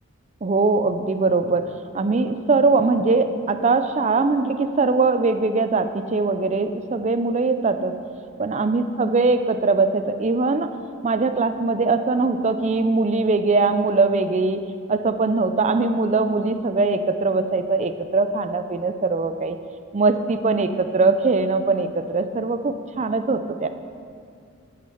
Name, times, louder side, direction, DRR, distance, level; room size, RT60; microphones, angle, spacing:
voice 1, 0.4-8.0 8.4-10.7 11.0-14.6 14.9-19.6 19.9-23.7, right 3 dB, 30° right, 9 dB, 0.4 m, -21 dB
9.7 x 6.3 x 7.8 m, 2.4 s
head